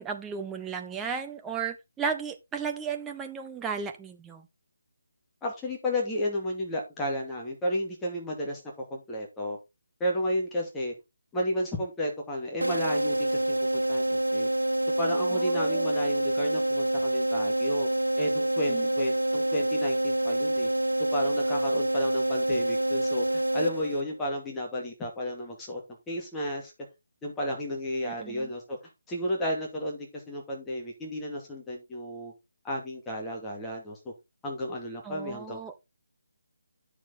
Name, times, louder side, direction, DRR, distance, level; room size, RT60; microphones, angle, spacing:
voice 1, 0.0-4.5 15.3-15.9 18.7-18.9 28.0-28.5 35.0-35.7, right 6 dB, 10° right, 1.1 m, -35 dB
voice 2, 5.4-8.6 8.9-9.6 10.0-10.9 11.3-14.5 15.0-17.9 18.2-20.7 21.1-25.8 26.1-26.7 27.2-28.8 29.1-32.3 32.6-34.1 34.4-35.7, equal, 10° left, 2.4 m, -32 dB
sound 1, 12.6-24.3, right 1 dB, 85° right, 0.4 m, -27 dB
9.8 x 6.7 x 3.8 m
figure-of-eight pair, 150°, 0 cm